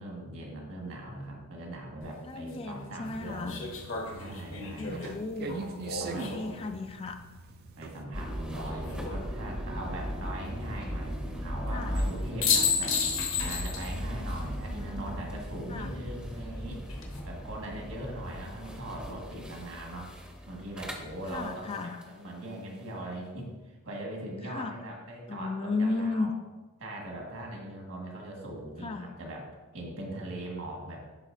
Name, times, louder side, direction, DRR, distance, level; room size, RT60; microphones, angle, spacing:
voice 1, 0.0-3.6 4.1-5.2 6.0-6.3 7.8-13.0 13.4-16.8 17.2-20.1 20.5-26.3 26.8-29.5 29.7-31.0, right 1 dB, 70° right, -1 dB, 1.6 m, -40 dB
sound 1, 2.0-2.1 3.5-6.7 8.5-9.2 12.0-12.1 12.4-14.0 14.3-14.4 16.7-17.2, left 5 dB, 60° left, 1.1 m, -32 dB
voice 2, 2.2-3.6 4.8-5.7 6.1-7.2 11.7-12.0 14.8-14.9 15.7-15.9 21.3-22.0 24.4-24.7 25.3-26.3 28.8-29.1, left 3 dB, 25° left, 7 dB, 0.3 m, -34 dB
sound 2, 3.0-8.0, right 5 dB, 45° right, 0.4 m, -42 dB
sound 3, 8.1-22.1, equal, 5° right, 0.7 m, -37 dB
11.0 x 4.0 x 2.6 m, 1.2 s
head